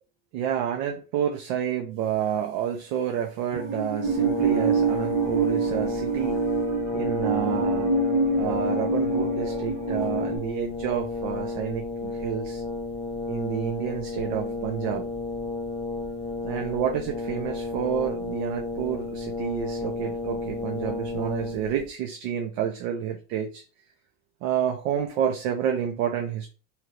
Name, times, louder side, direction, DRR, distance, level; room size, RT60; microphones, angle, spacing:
voice 1, 0.3-6.4 6.9-7.9 8.4-12.6 13.3-15.1 16.4-23.6 24.4-26.5, right 9 dB, 85° right, 0.6 m, -29 dB
Musical instrument, 3.5-10.4, right 4 dB, 40° right, 0.9 m, -26 dB
Brass instrument, 4.0-21.8, left 3 dB, 15° left, 0.3 m, -32 dB
2.9 x 2.4 x 3.1 m
cardioid pair, 135°, 38 cm